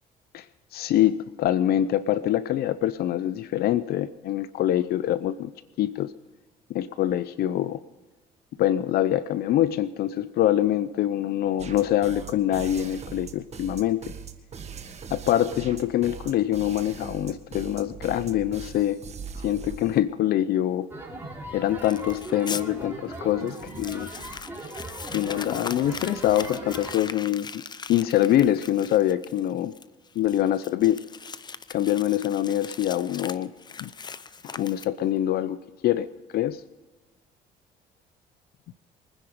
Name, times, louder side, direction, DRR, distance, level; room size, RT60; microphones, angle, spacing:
voice 1, 0.7-5.5 5.8-6.1 6.7-7.8 8.6-14.1 15.1-19.0 19.4-20.9 21.5-24.1 25.1-27.6 27.9-29.7 30.2-31.1 31.7-33.5 33.8-33.9 34.5-36.1 36.3-36.6, left 12 dB, 65° left, 15 dB, 0.6 m, -24 dB
sound 1, 11.6-20.0, right 6 dB, 40° right, 1.7 m, -40 dB
sound 2, 20.9-26.9, right 2 dB, 10° right, 4.1 m, -39 dB
Crumpling crinkling, 21.8-22.6 23.1-23.2 23.5-35.2, left 5 dB, 25° left, 0.7 m, -40 dB
24.0 x 10.0 x 5.0 m, 1.2 s
cardioid pair, 110°, 17 cm